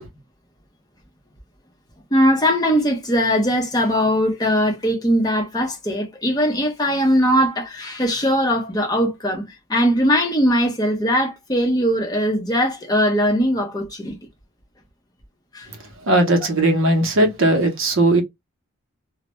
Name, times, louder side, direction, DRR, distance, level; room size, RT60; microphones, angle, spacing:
voice 1, 2.1-14.2 15.5-15.7, equal, 15° left, 0.6 m, -20 dB
voice 2, 16.1-18.2, right 1 dB, 60° right, 0.7 m, -17 dB
2.1 x 2.0 x 2.8 m
head